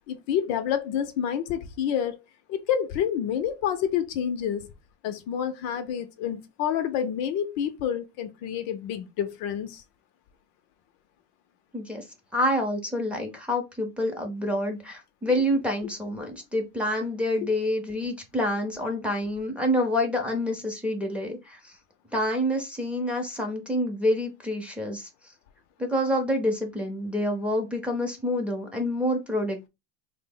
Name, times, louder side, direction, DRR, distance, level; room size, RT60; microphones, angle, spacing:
voice 1, 0.1-2.2 2.5-4.7 5.0-9.8, left 9 dB, 50° left, 0.5 m, -28 dB
voice 2, 11.7-12.0 12.3-21.8 22.1-25.1 25.8-29.7, left 1 dB, 5° right, 0.6 m, -27 dB
3.5 x 2.0 x 3.6 m
supercardioid pair, 140°, 33 cm